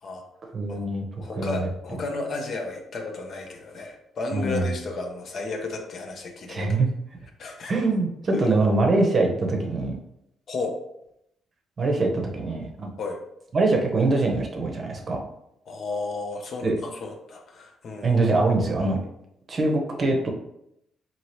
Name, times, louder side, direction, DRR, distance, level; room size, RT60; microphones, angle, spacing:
voice 1, 0.5-1.0 1.4-1.7 4.3-4.8 6.5-6.9 7.7-10.0 11.8-12.9 13.5-15.2 16.6-16.8 18.0-19.0 19.5-20.3, right 2 dB, 40° right, 1 dB, 0.7 m, -23 dB
voice 2, 1.2-6.8 7.4-7.7 8.3-8.5 10.5-10.8 13.0-13.2 15.7-18.1, left 3 dB, 55° left, 3 dB, 0.5 m, -33 dB
2.8 x 2.7 x 3.0 m, 0.80 s
cardioid pair, 90°, 0 cm